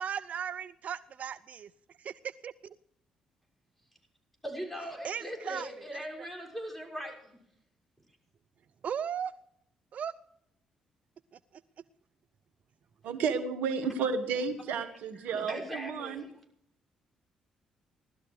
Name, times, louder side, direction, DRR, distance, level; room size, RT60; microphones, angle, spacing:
voice 1, 0.0-1.7 2.0-2.8 5.0-6.0 8.8-9.3 9.9-10.1, right 8 dB, 55° right, 16 dB, 0.5 m, -37 dB
voice 2, 4.4-7.4 15.3-16.2, equal, 5° left, 2 dB, 6.3 m, -40 dB
voice 3, 13.0-16.3, right 5 dB, 75° right, 9 dB, 1.2 m, -32 dB
18.0 x 13.0 x 4.8 m, 0.72 s
hypercardioid pair, 50°, 3 cm